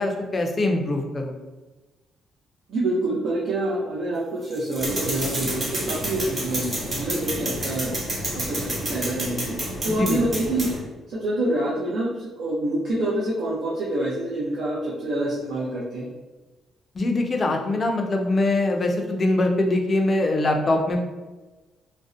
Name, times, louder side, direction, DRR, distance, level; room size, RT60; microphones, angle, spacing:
voice 1, 0.0-1.4 9.8-10.2 17.0-21.0, left 2 dB, 35° left, 3 dB, 0.4 m, -23 dB
voice 2, 2.7-7.9 8.3-9.6 9.8-10.7 11.1-16.1, right 1 dB, 70° right, -6 dB, 0.5 m, -26 dB
sound 1, 4.1-7.9 8.4-8.9, right 1 dB, 20° right, 0.7 m, -40 dB
sound 2, 4.8-10.8, right 1 dB, 40° right, 1.0 m, -29 dB
2.6 x 2.0 x 2.4 m, 1.2 s
cardioid pair, 90°, 0 cm